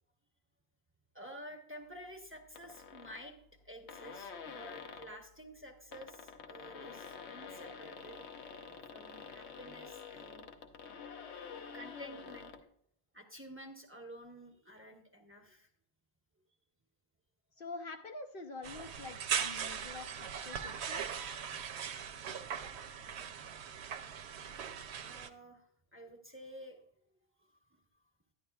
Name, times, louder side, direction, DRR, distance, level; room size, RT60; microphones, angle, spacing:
voice 1, 1.1-3.4 3.6-8.2 8.6-10.5 11.7-12.5 13.1-15.7 24.3-24.6 25.1-25.6 25.9-26.8 27.4-27.8, equal, 10° right, 2 dB, 0.9 m, -51 dB
sound 1, 2.5-3.2 3.6-3.7 3.9-5.2 5.8-12.6, left 6 dB, 85° left, 1.1 m, -48 dB
voice 2, 17.6-21.3, left 3 dB, 60° left, 5 dB, 0.8 m, -46 dB
sound 2, 18.6-25.3, right 8 dB, 80° right, 0.9 m, -40 dB
11.0 x 10.5 x 2.3 m, 0.66 s
omnidirectional pair, 1.1 m